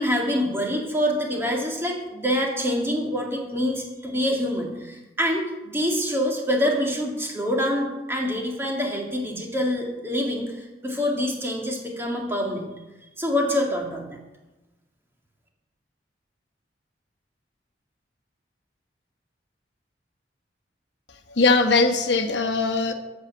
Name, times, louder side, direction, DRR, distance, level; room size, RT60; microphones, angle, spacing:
voice 1, 0.0-12.7 13.2-14.2, equal, 15° right, 0 dB, 2.1 m, -26 dB
voice 2, 21.3-22.9, left 3 dB, 75° left, 6 dB, 1.0 m, -20 dB
14.5 x 5.6 x 7.2 m, 1.1 s
head